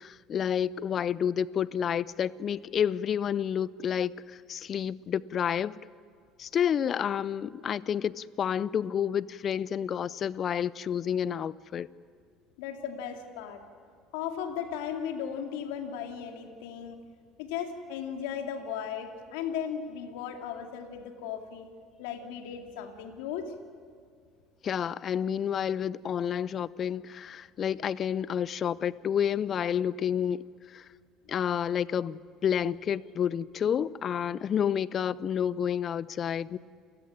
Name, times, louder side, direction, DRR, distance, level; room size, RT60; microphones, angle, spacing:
voice 1, 0.0-5.8 6.4-11.9 24.6-30.4 30.7-30.9 31.3-36.6, left 8 dB, 45° left, 0.6 m, -29 dB
voice 2, 12.6-13.6 14.1-17.0 17.4-21.7 22.0-23.5, left 8 dB, 75° left, 2.6 m, -36 dB
29.5 x 16.0 x 10.0 m
hypercardioid pair, 70°, 0 cm